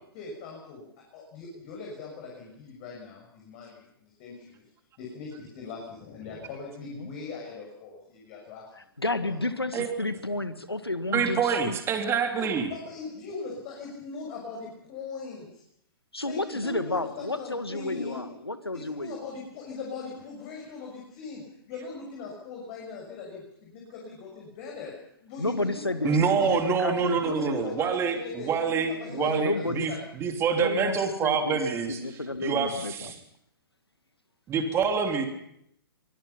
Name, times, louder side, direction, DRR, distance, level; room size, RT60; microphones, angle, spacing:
voice 1, 0.1-0.8 1.1-4.7 5.0-8.9 9.2-9.4 12.3-15.6 16.2-18.2 18.7-25.0 25.2-26.3 27.0-27.1 27.3-30.0, left 4 dB, 40° left, -1 dB, 6.6 m, -40 dB
voice 2, 9.0-11.8 16.1-19.1 25.4-27.9 29.1-29.9 30.5-31.6 31.9-33.1, left 2 dB, 90° left, 11 dB, 1.9 m, -31 dB
voice 3, 11.1-12.7 26.0-32.0 32.4-33.2 34.5-35.3, right 6 dB, 20° right, 5 dB, 3.2 m, -26 dB
24.5 x 21.5 x 5.8 m, 0.73 s
figure-of-eight pair, 115°, 13 cm